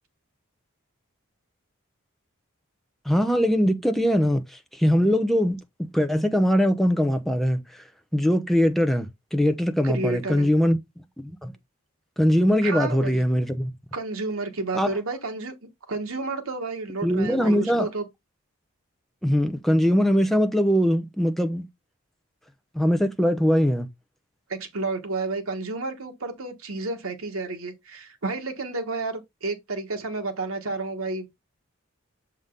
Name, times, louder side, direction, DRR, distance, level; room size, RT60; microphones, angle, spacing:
voice 1, 3.1-7.8 8.1-10.8 11.2-11.5 12.2-13.7 14.7-14.9 17.0-17.9 19.2-21.6 22.7-23.9, equal, ahead, 0.6 m, -22 dB
voice 2, 9.8-10.5 12.6-13.2 13.9-15.5 15.9-18.1 24.5-31.4, right 3 dB, 90° right, 1.3 m, -31 dB
6.8 x 3.7 x 3.8 m
head